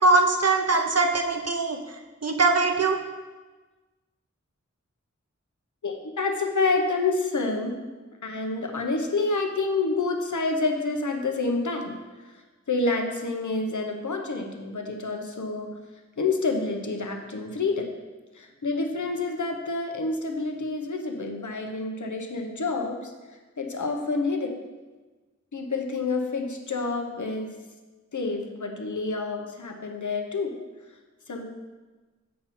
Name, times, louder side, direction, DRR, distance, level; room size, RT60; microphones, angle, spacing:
voice 1, 0.0-1.8 2.2-3.0, right 3 dB, 60° right, 3 dB, 0.8 m, -21 dB
voice 2, 5.8-7.7 8.2-11.9 12.7-15.7 16.2-17.9 18.4-23.1 23.6-24.5 25.5-27.6 28.1-30.5 31.3-31.5, left 3 dB, 85° left, 3 dB, 0.9 m, -28 dB
7.5 x 5.6 x 4.2 m, 1.3 s
wide cardioid pair, 50°, 29 cm